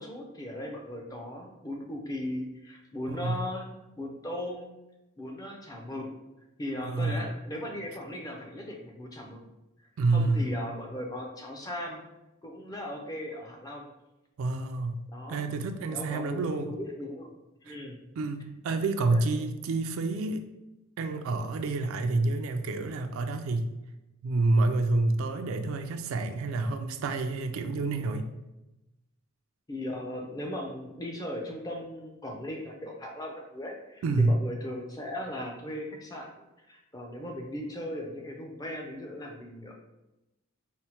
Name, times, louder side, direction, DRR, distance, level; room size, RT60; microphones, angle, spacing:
voice 1, 0.0-3.7 4.0-4.7 5.2-6.0 6.6-9.4 10.1-12.0 12.4-13.9 15.1-15.5 15.9-17.3 17.6-18.0 19.1-19.2 29.7-36.3 36.7-39.7, left 1 dB, 15° left, 1 dB, 0.4 m, -38 dB
voice 2, 3.1-3.4 6.8-7.3 10.0-10.5 14.4-16.7 17.7-17.8 18.2-20.5 21.0-23.7 24.2-28.3 34.0-34.3, right 3 dB, 70° right, 8 dB, 0.3 m, -28 dB
4.3 x 2.0 x 2.8 m, 0.96 s
head